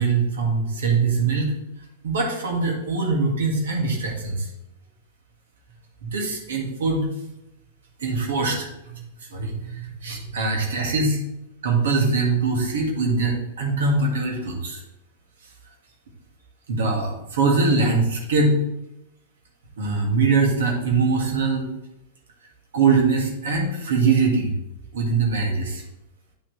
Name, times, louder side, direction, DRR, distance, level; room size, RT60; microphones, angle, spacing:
voice 1, 0.0-1.5 2.0-4.5 6.0-7.1 8.0-9.0 9.3-11.2 11.6-14.8 16.7-18.6 19.8-21.7 22.7-24.5 24.9-25.8, right 4 dB, 75° right, 1 dB, 1.9 m, -22 dB
9.3 x 5.9 x 3.2 m, 0.87 s
hypercardioid pair, 105°, 0 cm